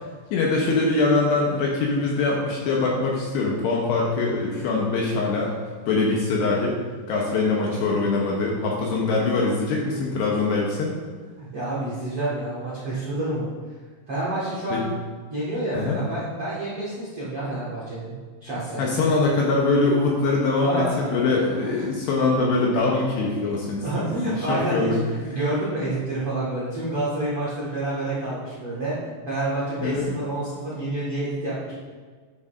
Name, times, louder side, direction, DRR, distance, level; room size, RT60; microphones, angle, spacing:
voice 1, 0.3-5.5 5.9-6.8 7.1-10.9 14.7-14.8 15.7-16.0 18.8-23.9 24.2-25.0 29.8-30.1, left 3 dB, 75° left, -2 dB, 2.6 m, -23 dB
voice 2, 11.4-13.5 14.1-14.9 15.3-18.1 18.4-18.9 20.6-21.1 23.8-28.9 29.2-31.7, right 1 dB, 75° right, -9 dB, 1.3 m, -28 dB
11.0 x 7.3 x 2.5 m, 1.5 s
omnidirectional pair, 5.6 m